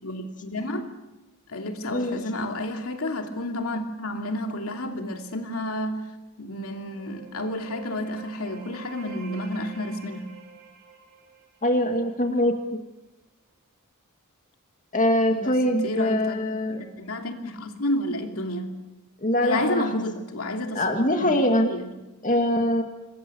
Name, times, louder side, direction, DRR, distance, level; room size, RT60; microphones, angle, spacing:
voice 1, 0.0-0.9 1.5-6.0 6.4-10.3 15.3-16.4 16.7-18.8 19.4-20.8 21.2-21.3 21.7-21.9, left 1 dB, 70° left, 2.8 m, -30 dB
sound 1, 6.6-12.2, right 5 dB, 65° right, 5.9 m, -47 dB
voice 2, 11.6-12.8 14.9-16.8 19.2-20.0 20.8-21.7 22.2-22.8, left 1 dB, 35° left, 2.1 m, -23 dB
27.0 x 22.0 x 7.0 m
head